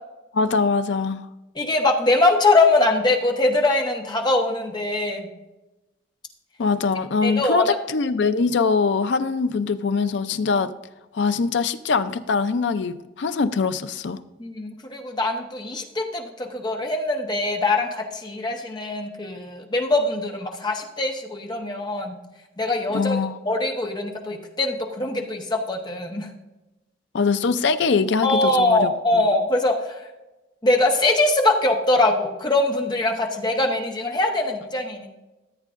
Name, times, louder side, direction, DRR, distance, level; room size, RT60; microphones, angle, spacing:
voice 1, 0.3-1.2 6.6-10.7 11.1-14.2 22.9-23.4 27.1-29.2, left 4 dB, 70° left, 11 dB, 0.5 m, -23 dB
voice 2, 1.5-5.3 7.2-7.8 14.4-22.2 22.6-23.2 23.4-26.3 28.2-30.0 30.6-35.1, left 2 dB, 25° left, 2 dB, 1.0 m, -22 dB
14.0 x 8.3 x 2.5 m, 1.0 s
head